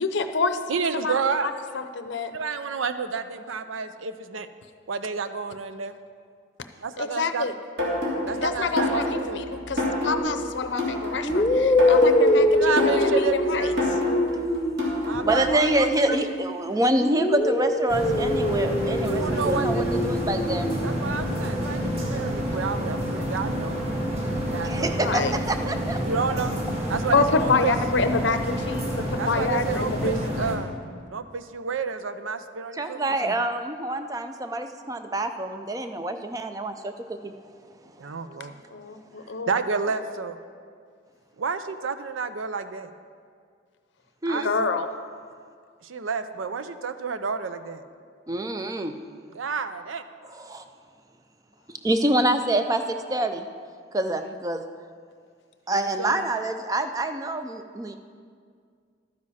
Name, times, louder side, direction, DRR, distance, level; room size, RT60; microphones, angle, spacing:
voice 1, 0.0-0.6 1.0-1.1 1.7-2.3 7.0-7.5 8.4-13.7 25.0-25.3 27.1-30.5 38.7-39.5 44.4-44.9, left 4 dB, 65° left, 9 dB, 0.6 m, -27 dB
voice 2, 0.7-1.8 2.3-4.5 4.9-5.9 6.8-7.5 8.2-9.4 12.5-13.8 15.0-16.2 19.0-19.8 20.8-23.8 24.5-25.3 26.0-26.5 26.9-27.7 29.2-30.7 31.1-33.4 38.0-38.6 39.5-40.4 41.4-42.9 44.3-44.7 45.8-47.8 49.3-50.0 55.7-56.3, right 5 dB, 85° right, 10 dB, 0.6 m, -30 dB
sound 1, 7.8-15.6, left 1 dB, 55° right, 2.8 m, -28 dB
sound 2, 10.2-10.4 11.2-16.6 17.0-20.9, left 1 dB, 20° left, 0.8 m, -24 dB
voice 3, 15.2-20.7 24.6-26.0 32.7-37.3 44.2-44.5 48.3-48.9 50.3-50.6 51.8-53.5 53.9-54.6 55.7-58.0, right 1 dB, 20° right, 7 dB, 0.4 m, -26 dB
sound 3, 17.9-30.6, equal, 35° right, 1.2 m, -28 dB
12.0 x 9.6 x 4.2 m, 2.1 s
head